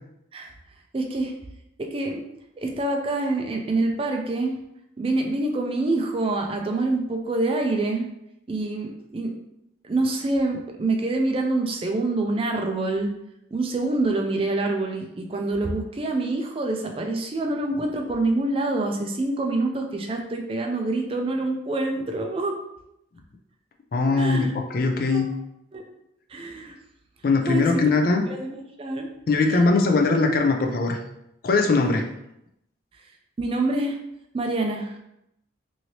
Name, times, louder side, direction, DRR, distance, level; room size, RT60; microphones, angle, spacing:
voice 1, 0.9-1.3 1.8-2.2 2.6-4.6 5.0-8.1 8.5-9.4 9.8-13.1 13.5-22.6 24.2-24.5 25.1-25.3 25.7-25.8 26.3-26.8 27.5-27.9 28.3-29.1 29.5-29.6 33.4-34.0 34.3-35.0, right 2 dB, 30° right, 3 dB, 0.3 m, -26 dB
voice 2, 23.9-25.3 27.2-28.2 29.3-31.0 31.4-32.1, left 3 dB, 50° left, 4 dB, 0.4 m, -21 dB
3.1 x 2.7 x 2.8 m, 0.82 s
head